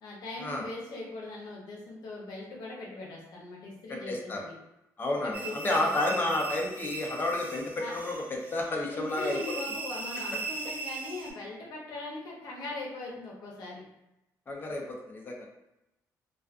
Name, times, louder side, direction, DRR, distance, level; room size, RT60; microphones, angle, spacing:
voice 1, 0.0-4.1 4.4-4.5 5.2-5.9 7.8-7.9 8.9-13.8, left 2 dB, 80° left, -2 dB, 0.7 m, -40 dB
voice 2, 4.1-4.4 5.0-9.4 14.5-15.5, left 2 dB, 30° left, 0 dB, 0.5 m, -31 dB
sound 1, 5.3-11.3, right 4 dB, 25° right, 0.4 m, -39 dB
2.3 x 2.3 x 2.4 m, 0.89 s
cardioid pair, 120°, 7 cm